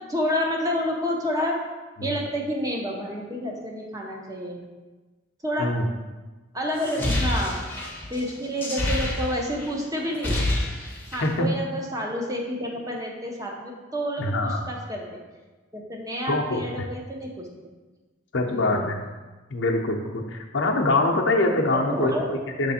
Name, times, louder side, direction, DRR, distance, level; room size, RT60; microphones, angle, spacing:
voice 1, 0.0-1.6 2.0-4.6 5.4-5.7 6.5-7.6 8.1-10.4 11.1-15.0 15.7-17.5 18.5-18.9 21.7-22.3, equal, 15° right, -1 dB, 0.8 m, -29 dB
sound 1, 6.8-9.7 10.0-11.4, left 1 dB, 10° left, 0.9 m, -27 dB
voice 2, 14.2-14.6 16.3-16.9 18.3-19.0 19.5-22.7, left 2 dB, 65° left, 1 dB, 0.7 m, -24 dB
6.8 x 3.3 x 4.3 m, 1.2 s
head